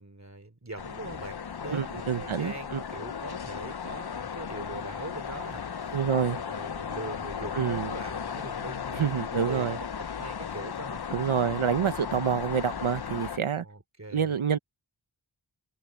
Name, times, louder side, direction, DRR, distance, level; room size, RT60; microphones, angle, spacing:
voice 1, 0.0-9.9 10.1-11.0 12.1-12.2 13.5-14.4, right 2 dB, 35° right, 3.2 m, -42 dB
sound 1, 0.8-13.4, left 7 dB, 55° left, 0.7 m, -36 dB
voice 2, 1.7-2.8 5.9-6.4 7.5-7.9 8.9-9.8 11.1-13.6 14.1-14.6, right 7 dB, 85° right, 0.9 m, -27 dB
wide cardioid pair, 60°, 47 cm